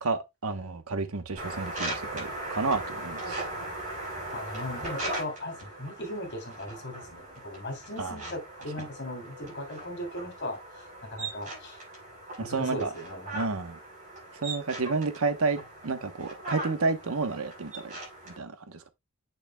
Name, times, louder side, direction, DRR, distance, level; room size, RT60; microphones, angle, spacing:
voice 1, 0.0-3.4 8.0-8.2 12.4-12.9 13.3-13.8 14.4-17.9 18.3-18.9, right 3 dB, 80° right, 1.0 m, -31 dB
sound 1, 1.4-18.4, right 2 dB, 35° right, 5.1 m, -39 dB
voice 2, 4.3-11.8 12.4-13.5, left 1 dB, 55° left, 3.0 m, -38 dB
8.6 x 6.4 x 2.2 m
head